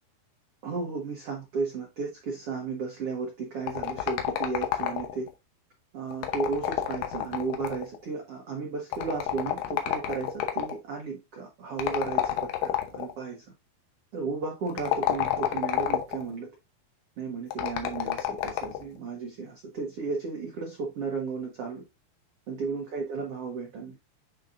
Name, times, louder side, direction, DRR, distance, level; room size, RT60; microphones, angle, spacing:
voice 1, 0.6-5.3 5.9-13.4 14.1-16.5 17.2-21.8 22.5-23.9, right 4 dB, 80° right, 1.3 m, -34 dB
sound 1, 3.7-5.3 6.1-8.0 8.9-10.8 11.8-13.1 14.7-16.3 17.5-18.8, left 12 dB, 80° left, 3.0 m, -29 dB
9.4 x 4.0 x 2.5 m
omnidirectional pair, 4.7 m